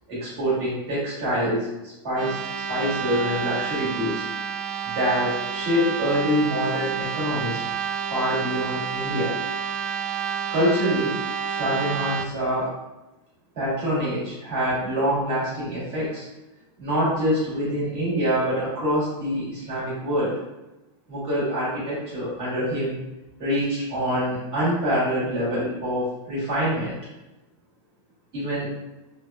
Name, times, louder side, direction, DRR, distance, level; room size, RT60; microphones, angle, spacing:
voice 1, 0.1-2.4 2.7-4.3 4.8-7.6 8.1-9.3 10.5-11.2 11.5-12.7 13.5-16.2 16.8-20.3 21.1-23.0 23.4-26.9 28.3-28.7, equal, 35° right, -9 dB, 1.5 m, -25 dB
sound 1, 2.1-12.3, right 6 dB, 80° right, 0.4 m, -29 dB
3.4 x 2.1 x 2.3 m, 1.0 s
supercardioid pair, 165°, 16 cm